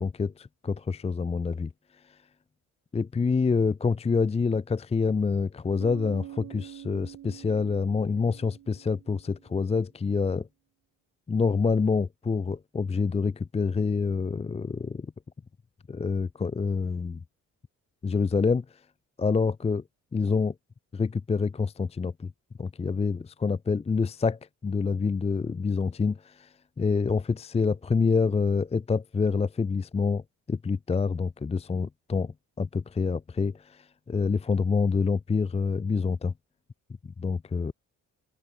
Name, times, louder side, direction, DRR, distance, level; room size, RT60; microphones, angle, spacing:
voice 1, 0.0-1.7 2.0-2.2 2.9-10.5 11.3-15.1 15.9-17.2 18.0-18.8 19.2-19.8 20.1-20.5 20.9-22.3 22.6-36.3 37.2-37.7, left 5 dB, 20° left, 0.6 m, -27 dB
Bass guitar, 5.8-9.6, right 12 dB, 75° right, 2.9 m, -45 dB
cardioid pair, 90°, 30 cm